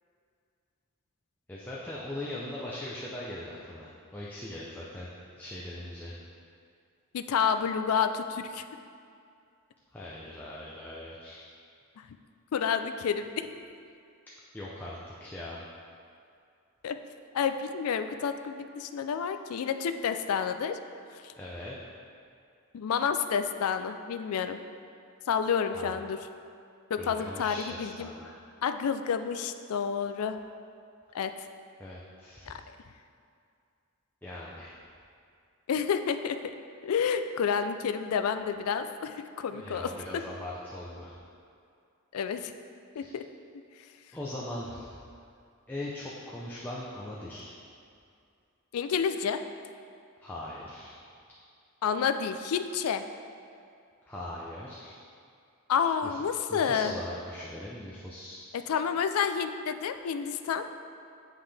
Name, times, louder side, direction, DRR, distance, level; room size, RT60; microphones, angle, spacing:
voice 1, 1.5-5.1 5.4-6.1 9.9-11.4 14.5-15.6 21.4-21.7 25.7-26.1 27.0-28.3 31.8-32.5 34.2-34.7 39.5-41.2 42.9-43.1 44.1-45.0 45.7-47.5 50.2-51.0 54.1-55.0 56.0-56.2 56.5-58.4, left 1 dB, 10° left, -6 dB, 0.5 m, -40 dB
voice 2, 7.1-8.6 12.0-12.1 12.5-13.5 16.8-17.0 17.3-20.8 21.1-21.3 22.7-24.6 25.3-26.2 26.9-28.1 28.6-30.4 31.1-31.3 32.5-32.6 35.7-36.5 36.8-39.9 42.1-42.5 43.0-43.2 48.7-49.4 51.8-53.0 55.7-56.9 58.7-60.6, left 7 dB, 85° left, 9 dB, 0.4 m, -29 dB
9.8 x 3.7 x 3.4 m, 2.4 s
head